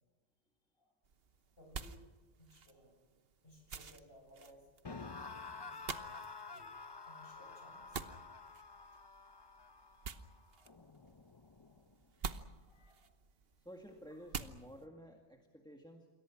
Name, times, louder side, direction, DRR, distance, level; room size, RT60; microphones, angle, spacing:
sound 1, 1.0-14.9, right 5 dB, 55° right, 1.3 m, -50 dB
voice 1, 1.6-2.0 2.4-2.9 3.4-4.7 5.6-6.7 7.0-8.1 10.5-11.0 12.6-13.1, equal, 50° left, 1 dB, 8.3 m, -61 dB
sound 2, 4.8-12.0, left 4 dB, 25° left, 0.7 m, -50 dB
voice 2, 9.9-10.3 13.6-16.1, equal, 5° left, 3 dB, 1.9 m, -54 dB
28.5 x 22.5 x 6.1 m, 1.3 s
omnidirectional pair, 1.2 m